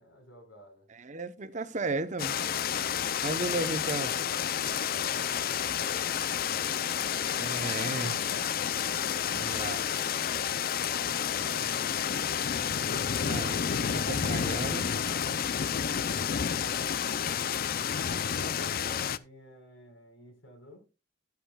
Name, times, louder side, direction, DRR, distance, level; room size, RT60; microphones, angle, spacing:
voice 1, 0.0-0.9 11.1-12.1 18.6-20.9, left 1 dB, 80° left, 5.1 m, -52 dB
voice 2, 1.0-2.4 3.2-4.2 7.4-8.2 9.3-9.9 13.2-13.6 13.9-14.9, right 3 dB, 40° right, 0.8 m, -34 dB
sound 1, 2.2-19.2, left 8 dB, 50° left, 0.5 m, -30 dB
12.0 x 10.5 x 2.3 m
head